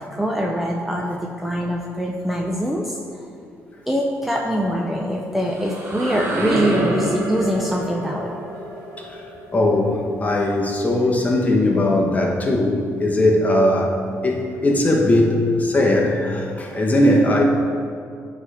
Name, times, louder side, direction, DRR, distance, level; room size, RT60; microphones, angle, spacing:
voice 1, 0.0-3.0 3.9-8.4, equal, 5° right, -1 dB, 0.6 m, -23 dB
sound 1, 5.2-10.9, right 1 dB, 40° right, 1.7 m, -28 dB
voice 2, 9.5-17.4, left 1 dB, 25° left, -1 dB, 1.2 m, -19 dB
9.5 x 3.4 x 5.0 m, 2.3 s
cardioid pair, 95°, 6 cm